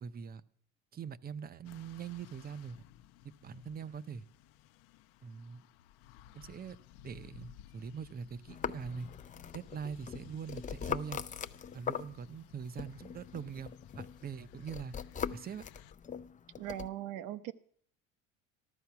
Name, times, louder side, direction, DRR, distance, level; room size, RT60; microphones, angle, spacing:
voice 1, 0.0-0.4 0.9-2.8 3.4-4.3 5.2-5.6 6.3-6.8 7.0-9.1 9.5-11.2 11.7-15.0 15.3-15.6, right 6 dB, 30° right, 16 dB, 0.7 m, -43 dB
sound 1, 1.6-15.9, left 11 dB, 80° left, 0.8 m, -57 dB
sound 2, 8.5-12.5 12.8-16.9, left 7 dB, 25° left, 0.5 m, -41 dB
voice 2, 16.6-17.5, right 12 dB, 70° right, 14 dB, 1.0 m, -39 dB
14.0 x 13.0 x 5.8 m, 0.63 s
cardioid pair, 115°, 34 cm